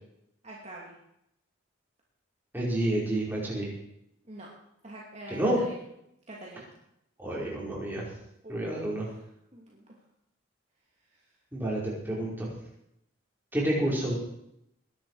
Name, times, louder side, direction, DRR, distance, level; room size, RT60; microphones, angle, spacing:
voice 1, 0.4-1.0 4.3-4.5 4.8-5.4 5.7-5.8 6.3-6.7 8.4-8.9 9.5-9.8, right 1 dB, 35° right, -4 dB, 2.5 m, -45 dB
voice 2, 2.5-3.7 5.3-5.6 7.2-8.0 8.5-9.1 11.5-12.5 13.5-14.2, right 1 dB, 10° right, -5 dB, 5.0 m, -29 dB
20.5 x 11.0 x 4.9 m, 0.79 s
head